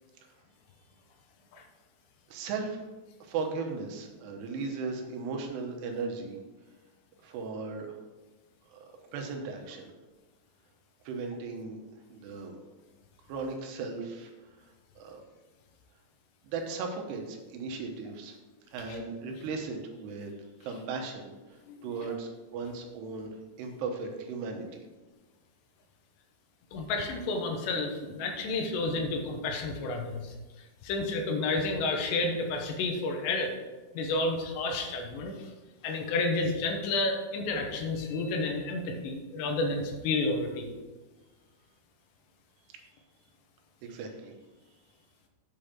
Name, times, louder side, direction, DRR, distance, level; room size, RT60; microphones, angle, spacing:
voice 1, 2.3-2.9 3.2-6.4 7.2-8.0 8.7-9.9 11.0-11.8 12.1-12.6 13.3-14.3 15.0-15.2 16.4-18.4 18.7-20.3 20.6-24.8 43.8-44.3, right 4 dB, 85° right, 3 dB, 3.1 m, -37 dB
voice 2, 21.7-22.1 26.7-30.3 30.8-33.6 33.9-35.5 35.8-40.7, left 3 dB, 90° left, 3 dB, 3.2 m, -31 dB
7.9 x 5.1 x 5.9 m, 1.2 s
omnidirectional pair, 4.8 m